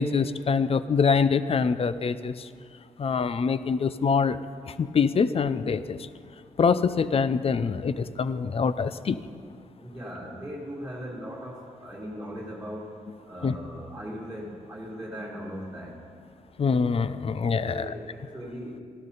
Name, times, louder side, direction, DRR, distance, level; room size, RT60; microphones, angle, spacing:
voice 1, 0.0-2.5 3.0-4.4 4.7-6.0 6.6-9.2 13.4-13.6 16.6-17.9, left 5 dB, 45° left, 14 dB, 0.6 m, -24 dB
voice 2, 9.8-13.0 13.2-16.0 17.4-18.8, equal, 5° right, -6 dB, 2.8 m, -39 dB
15.0 x 12.0 x 4.1 m, 2.2 s
cardioid pair, 65°, 14 cm